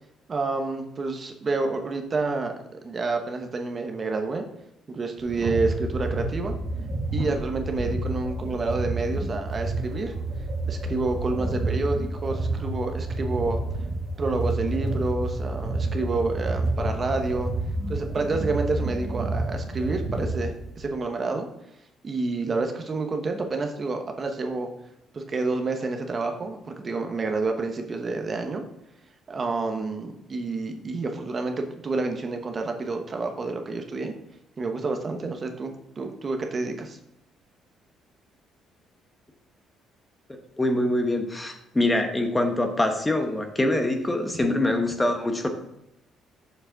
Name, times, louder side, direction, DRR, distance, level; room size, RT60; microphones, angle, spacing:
voice 1, 0.3-4.5 4.9-6.5 7.1-10.1 10.7-13.6 14.2-17.5 17.9-21.5 22.0-24.7 25.1-28.6 29.3-34.1 34.6-37.0 44.4-44.5, right 3 dB, 30° right, 4 dB, 0.9 m, -29 dB
sound 1, 5.2-20.8, right 2 dB, 45° right, 1.8 m, -29 dB
voice 2, 40.6-45.5, left 1 dB, 15° left, 5 dB, 1.0 m, -24 dB
7.0 x 6.8 x 3.9 m, 0.81 s
cardioid pair, 125°, 0 cm